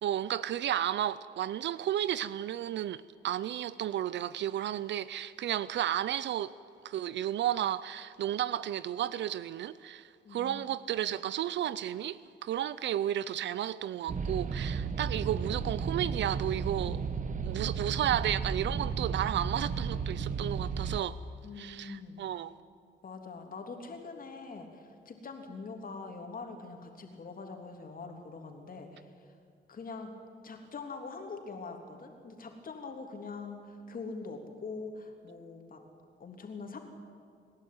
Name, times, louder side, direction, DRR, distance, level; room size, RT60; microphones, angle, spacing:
voice 1, 0.0-6.5 6.8-17.0 17.4-21.2 21.6-22.5, right 11 dB, 65° right, 0.5 m, -33 dB
voice 2, 10.2-10.6 11.0-11.1 14.8-15.0 21.4-22.2 23.0-29.3 29.7-30.1 30.4-35.8 36.2-36.8, left 4 dB, 45° left, 3.3 m, -43 dB
sound 1, 14.1-21.0, right 5 dB, 40° right, 1.0 m, -34 dB
27.0 x 11.5 x 9.4 m
cardioid pair, 90°, 20 cm